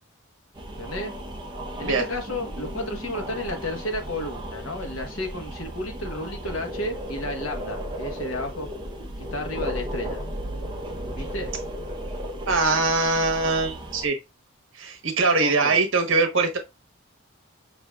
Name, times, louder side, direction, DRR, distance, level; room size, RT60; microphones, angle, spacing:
sound 1, 0.5-14.1, equal, 20° right, 0.7 m, -35 dB
voice 1, 0.8-1.1 1.8-8.7 9.3-10.2 11.2-11.5 15.4-15.8, left 1 dB, 70° left, 1.1 m, -32 dB
voice 2, 12.5-14.2 14.7-16.6, right 3 dB, 65° right, 1.1 m, -22 dB
6.3 x 2.8 x 2.3 m
head